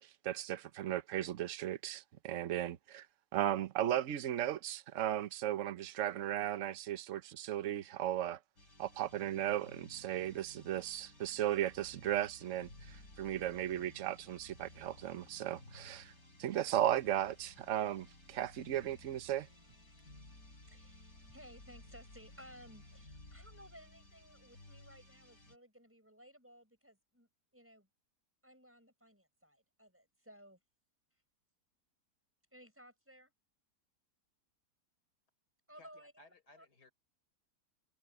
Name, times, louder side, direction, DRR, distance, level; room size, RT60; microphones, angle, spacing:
voice 1, 0.2-3.1 3.3-8.4 8.8-16.1 16.4-19.5, right 12 dB, 55° right, 1.1 m, -36 dB
sound 1, 8.6-25.6, left 2 dB, 60° left, 6.4 m, -57 dB
voice 2, 20.7-27.9 28.4-30.6 32.5-33.3 35.7-36.7, equal, 5° right, 6.0 m, -58 dB
voice 3, 35.7-36.9, left 2 dB, 75° left, 4.8 m, -61 dB
omnidirectional pair, 1.7 m